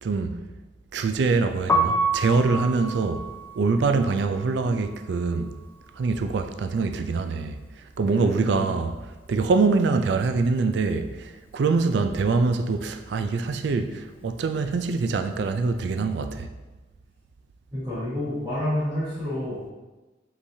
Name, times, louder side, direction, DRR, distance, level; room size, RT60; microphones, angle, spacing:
voice 1, 0.0-0.4 0.9-3.3 3.6-5.5 6.0-7.6 8.0-8.9 9.3-16.5, right 4 dB, 65° right, 0.3 m, -24 dB
Piano, 1.6-7.5 7.8-9.4 9.6-16.1, right 1 dB, 10° left, 0.3 m, -31 dB
voice 2, 8.0-8.7 17.7-19.7, left 1 dB, 20° right, 1.2 m, -29 dB
5.4 x 3.3 x 2.7 m
head